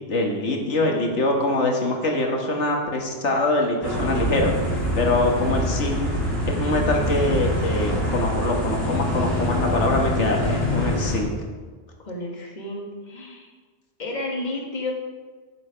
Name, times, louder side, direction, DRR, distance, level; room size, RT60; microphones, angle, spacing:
voice 1, 0.1-4.5 5.0-6.0 6.5-11.3, left 2 dB, 90° left, 1 dB, 1.7 m, -24 dB
sound 1, 3.8-11.2, left 1 dB, 65° left, 3.5 m, -25 dB
voice 2, 5.1-5.6 12.0-13.5 14.0-14.9, left 2 dB, 40° left, -1 dB, 1.8 m, -32 dB
14.0 x 6.4 x 5.1 m, 1.4 s
omnidirectional pair, 1.2 m